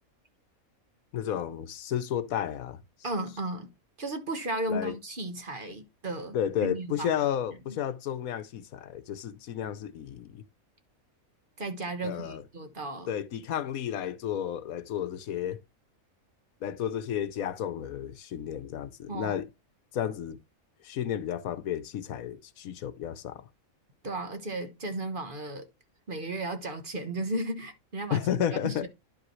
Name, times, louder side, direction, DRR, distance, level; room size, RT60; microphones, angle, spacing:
voice 1, 1.1-2.8 4.7-5.0 6.3-10.4 12.0-12.4 13.1-15.6 16.6-19.5 19.9-20.4 20.8-23.4 28.1-28.9, left 10 dB, 80° left, 1.2 m, -32 dB
voice 2, 3.0-3.7 4.0-6.4 6.6-7.2 7.7-7.8 11.6-13.1 19.1-19.4 24.0-25.7 26.1-28.9, right 2 dB, 40° right, 1.4 m, -34 dB
11.0 x 5.2 x 3.1 m
omnidirectional pair, 1.5 m